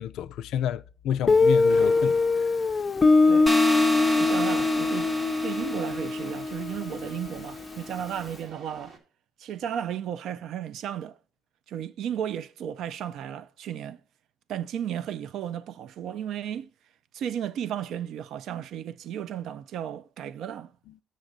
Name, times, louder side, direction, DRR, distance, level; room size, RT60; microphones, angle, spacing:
voice 1, 0.0-2.2, left 10 dB, 85° left, 0.4 m, -29 dB
Guitar, 1.3-7.9, left 3 dB, 25° left, 0.5 m, -23 dB
sound 1, 1.7-9.0, right 3 dB, 60° right, 1.7 m, -47 dB
sound 2, 3.5-6.3, right 1 dB, 15° right, 0.8 m, -31 dB
voice 2, 4.2-5.1 5.4-8.9 9.4-11.2 11.7-14.0 14.5-16.7 17.1-20.7, right 9 dB, 75° right, 0.4 m, -34 dB
8.0 x 6.4 x 3.9 m
cardioid pair, 100°, 0 cm